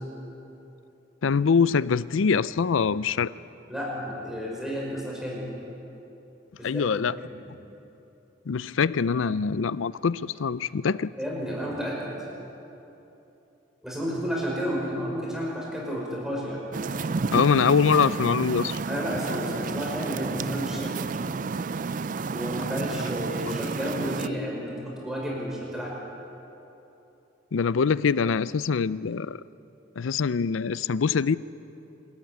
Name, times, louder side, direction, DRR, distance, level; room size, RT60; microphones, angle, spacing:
voice 1, 1.2-3.3 6.6-7.2 8.5-11.1 17.3-18.8 23.3-23.4 27.5-29.4 30.0-31.4, left 5 dB, 85° left, 18 dB, 0.5 m, -24 dB
voice 2, 3.7-5.4 6.6-6.9 7.3-7.4 11.2-12.1 13.8-16.6 18.9-21.0 22.3-25.9, equal, 5° right, -4 dB, 5.8 m, -31 dB
sound 1, 16.7-24.3, right 4 dB, 40° right, 0.4 m, -31 dB
27.0 x 13.5 x 9.4 m, 3.0 s
head